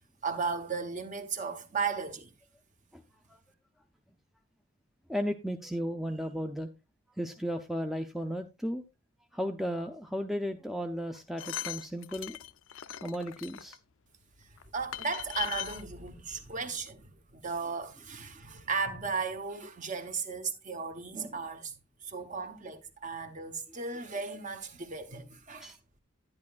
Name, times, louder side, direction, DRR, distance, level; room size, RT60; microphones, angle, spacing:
voice 1, 0.2-2.3 14.7-25.7, right 5 dB, 35° right, 0.9 m, -36 dB
voice 2, 5.1-6.7 7.2-8.8 9.3-12.4 13.0-13.8 25.6-25.8, equal, ahead, 0.4 m, -34 dB
sound 1, 11.1-13.8 14.6-14.7 14.9-15.8 16.6-16.7 16.9-17.0, left 12 dB, 65° left, 0.5 m, -39 dB
11.0 x 10.5 x 2.4 m
head